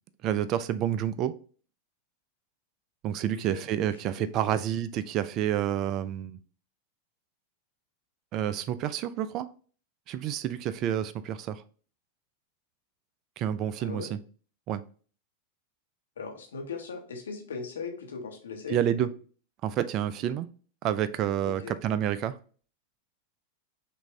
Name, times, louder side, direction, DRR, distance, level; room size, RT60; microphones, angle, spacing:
voice 1, 0.2-1.4 3.0-6.4 8.3-9.5 10.1-11.6 13.4-14.2 14.7-14.8 18.7-19.1 19.6-20.5 20.8-22.4, right 10 dB, 35° right, 0.3 m, -29 dB
voice 2, 3.3-3.7 4.1-4.6 13.8-14.1 16.2-19.1 21.4-21.8, left 5 dB, 65° left, 1.0 m, -39 dB
6.1 x 2.6 x 3.2 m
figure-of-eight pair, 90°, 0 cm